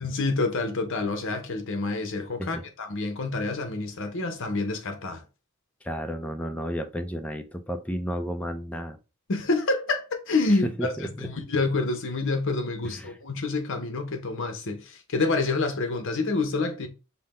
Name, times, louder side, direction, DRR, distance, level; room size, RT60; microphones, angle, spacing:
voice 1, 0.0-5.2 9.3-16.9, left 3 dB, 60° left, 0.8 m, -28 dB
voice 2, 5.8-9.0 10.6-11.3 12.9-13.2, equal, 5° left, 0.5 m, -32 dB
5.6 x 2.2 x 4.1 m
head